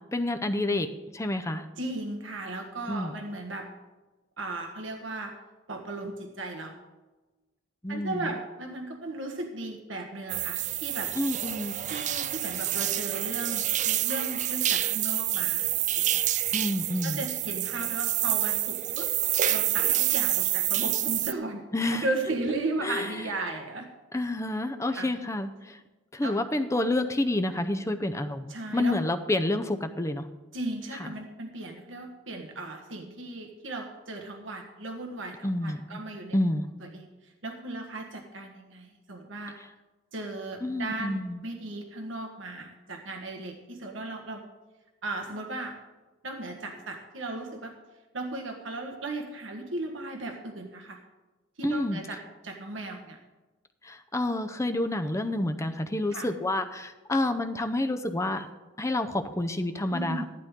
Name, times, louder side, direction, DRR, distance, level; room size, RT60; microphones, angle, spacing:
voice 1, 0.0-1.6 2.9-3.2 7.8-8.3 11.2-11.8 16.5-17.2 21.7-22.1 22.8-23.1 24.1-25.8 26.1-30.3 30.9-31.1 35.4-35.8 36.3-36.7 40.6-41.4 51.6-52.0 53.8-58.5 58.8-60.2, left 1 dB, 15° left, 8 dB, 0.6 m, -29 dB
voice 2, 1.8-3.7 4.4-5.3 5.7-6.8 7.9-11.1 11.9-15.7 16.0-16.2 17.0-19.1 19.5-21.6 21.9-23.9 24.9-25.1 26.2-26.4 28.5-29.0 30.5-36.4 36.8-39.6 40.1-44.4 45.0-45.8 46.2-47.7 48.1-51.0 51.6-53.2 56.1-56.3 59.9-60.3, right 2 dB, 90° right, 2 dB, 1.5 m, -36 dB
sound 1, 10.3-21.3, right 13 dB, 40° right, 0.4 m, -28 dB
15.0 x 11.5 x 3.7 m, 1.2 s
head